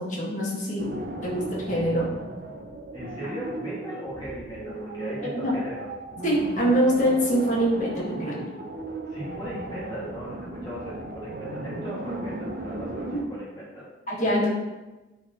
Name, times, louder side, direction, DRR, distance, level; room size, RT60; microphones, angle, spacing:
voice 1, 0.0-2.1 5.2-5.5 6.2-8.5 14.1-14.4, equal, 40° left, -4 dB, 1.7 m, -24 dB
sound 1, 0.8-13.3, right 2 dB, 50° right, 0.6 m, -36 dB
voice 2, 2.9-5.9 9.1-13.9 14.2-14.5, equal, 25° left, -8 dB, 2.1 m, -38 dB
9.7 x 4.4 x 3.0 m, 1.1 s
head